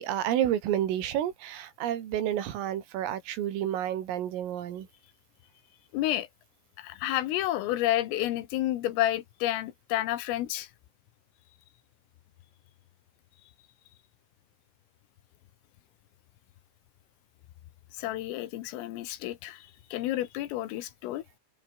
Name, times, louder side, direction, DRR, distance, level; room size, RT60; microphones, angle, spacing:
voice 1, 0.0-4.9, right 11 dB, 85° right, 5.2 m, -30 dB
voice 2, 5.9-6.3 6.8-10.7 18.0-21.2, left 14 dB, 90° left, 4.2 m, -30 dB
omnidirectional pair, 5.7 m